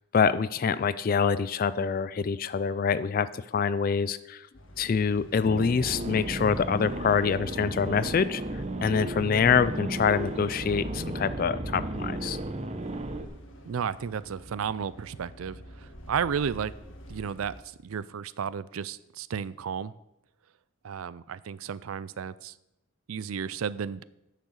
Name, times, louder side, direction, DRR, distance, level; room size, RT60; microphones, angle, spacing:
voice 1, 0.1-4.4 4.8-12.4, left 6 dB, 45° left, 15 dB, 0.3 m, -26 dB
sound 1, 4.5-17.6, equal, 70° left, 1.5 m, -48 dB
sound 2, 5.4-13.2, right 1 dB, 30° right, 0.8 m, -34 dB
voice 2, 13.7-16.7 17.1-19.9 20.8-22.5 23.1-24.0, right 7 dB, 85° right, 18 dB, 0.4 m, -33 dB
10.0 x 6.7 x 6.4 m, 0.89 s
head